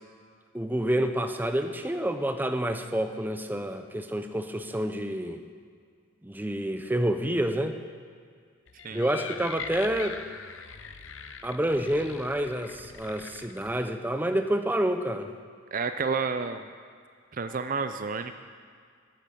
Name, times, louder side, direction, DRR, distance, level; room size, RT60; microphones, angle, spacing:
voice 1, 0.5-5.4 6.2-7.8 8.9-10.2 11.4-15.3, right 1 dB, 10° right, 7 dB, 0.7 m, -28 dB
sound 1, 8.7-13.8, left 6 dB, 70° left, 0.8 m, -42 dB
voice 2, 15.7-16.7 17.3-18.4, right 5 dB, 45° right, 9 dB, 0.5 m, -30 dB
13.5 x 10.5 x 6.8 m, 2.1 s
head